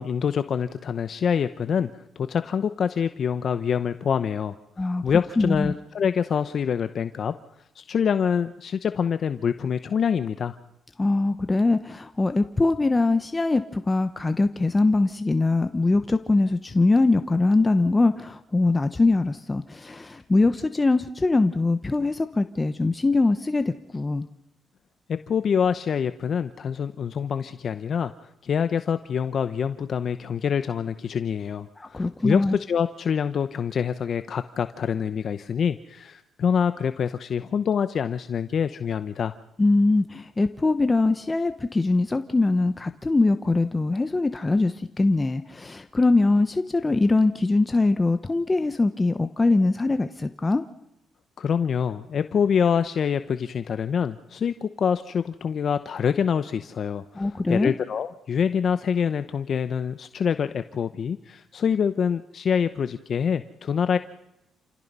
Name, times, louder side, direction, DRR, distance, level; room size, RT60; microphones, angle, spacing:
voice 1, 0.0-7.3 7.8-10.6 25.1-39.3 51.4-64.0, left 7 dB, 55° left, 11 dB, 0.9 m, -26 dB
voice 2, 5.4-5.7 11.0-24.3 31.8-32.6 39.6-50.6 57.1-57.7, left 3 dB, 20° left, 9 dB, 1.0 m, -22 dB
28.5 x 17.0 x 5.6 m, 0.86 s
cardioid pair, 90°, 0 cm